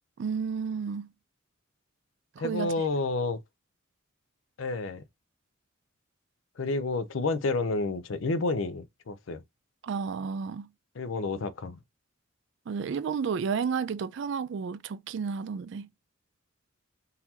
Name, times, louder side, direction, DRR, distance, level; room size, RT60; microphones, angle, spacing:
voice 1, 0.2-1.1 2.4-2.7 9.8-10.7 12.7-15.9, right 6 dB, 60° right, 0.3 m, -31 dB
voice 2, 2.4-3.4 4.6-5.0 6.6-9.4 11.0-11.8, left 3 dB, 75° left, 0.5 m, -30 dB
4.0 x 2.8 x 2.7 m
head